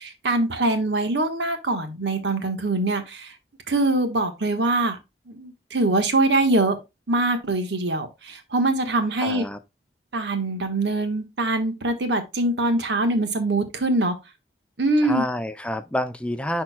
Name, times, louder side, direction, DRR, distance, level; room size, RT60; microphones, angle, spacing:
voice 1, 0.0-3.3 3.7-5.0 5.3-6.8 7.1-9.5 10.1-14.1 14.8-15.2, right 2 dB, 85° right, 1.3 m, -23 dB
voice 2, 9.2-9.6 15.0-16.6, left 1 dB, 5° left, 0.4 m, -28 dB
10.5 x 4.4 x 2.2 m
head